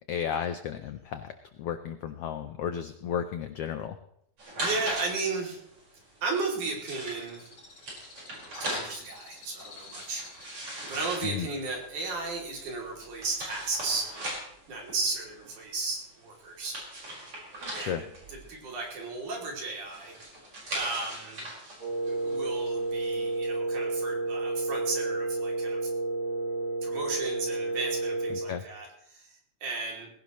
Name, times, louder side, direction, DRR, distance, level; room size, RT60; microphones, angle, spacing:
voice 1, 0.1-1.3 1.6-4.0 11.2-11.5 17.7-18.0 28.5-28.6, left 8 dB, 85° left, 9 dB, 1.3 m, -33 dB
sound 1, 4.4-23.3, right 1 dB, 45° right, 5.9 m, -41 dB
voice 2, 4.6-5.6 6.2-7.5 8.6-10.6 10.9-14.1 14.7-16.8 17.7-20.2 20.7-21.5 22.1-25.9 26.8-30.1, right 3 dB, 70° right, -1 dB, 4.4 m, -34 dB
Bird, 6.3-13.5, left 4 dB, 55° left, 3.9 m, -52 dB
Wind instrument woodwind instrument, 21.8-28.5, right 2 dB, 25° left, 1.4 m, -31 dB
20.0 x 16.5 x 3.1 m, 0.73 s
omnidirectional pair, 3.6 m